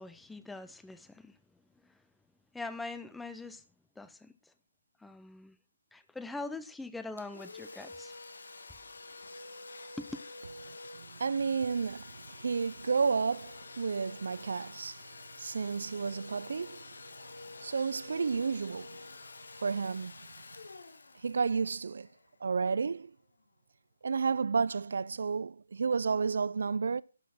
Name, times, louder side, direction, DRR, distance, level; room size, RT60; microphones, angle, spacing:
voice 1, 0.0-1.4 1.8-2.0 2.5-3.6 4.0-4.5 5.0-5.6 5.9-8.1 10.0-10.1, left 3 dB, 5° left, 0.5 m, -43 dB
Domestic sounds home sounds, 7.2-22.6, left 3 dB, 85° left, 1.5 m, -48 dB
voice 2, 11.0-15.0 15.4-16.8 17.6-19.0 19.6-20.1 21.2-22.1 22.4-23.1 24.0-27.0, right 5 dB, 65° right, 0.4 m, -31 dB
11.5 x 6.2 x 6.0 m
hypercardioid pair, 170°, 0 cm